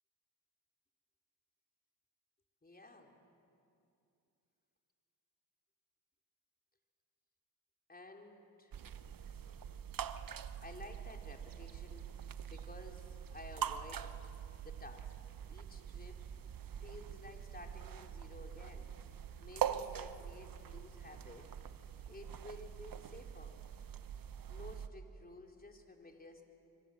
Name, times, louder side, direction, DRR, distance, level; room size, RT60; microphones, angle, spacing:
voice 1, 2.6-3.1 7.9-8.7 9.3-9.5 10.6-12.1 12.5-14.1 14.6-15.1 15.5-16.2 16.8-18.9 19.4-21.4 22.1-23.6 24.2-24.3 24.5-26.4, left 2 dB, 20° left, 2 dB, 4.1 m, -53 dB
sound 1, 8.7-24.9, right 9 dB, 50° right, 1.2 m, -44 dB
26.0 x 24.0 x 7.9 m, 2.7 s
supercardioid pair, 65°, 43 cm